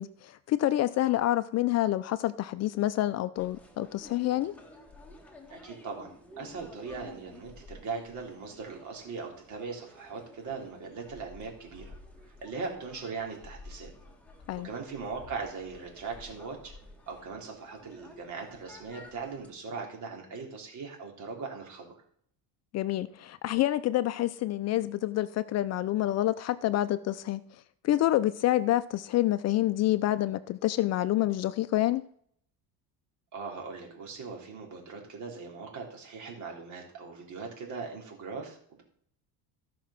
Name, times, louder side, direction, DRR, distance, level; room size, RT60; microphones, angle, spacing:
voice 1, 0.0-4.5 14.5-14.7 22.7-27.4 27.8-32.0, left 14 dB, 45° left, 0.5 m, -27 dB
sound 1, 3.3-19.5, left 2 dB, 5° left, 1.8 m, -52 dB
voice 2, 5.5-11.9 12.3-13.9 14.6-16.7 17.1-21.9 33.3-38.8, right 4 dB, 50° right, 3.7 m, -40 dB
14.0 x 6.0 x 5.8 m
cardioid pair, 140°, 37 cm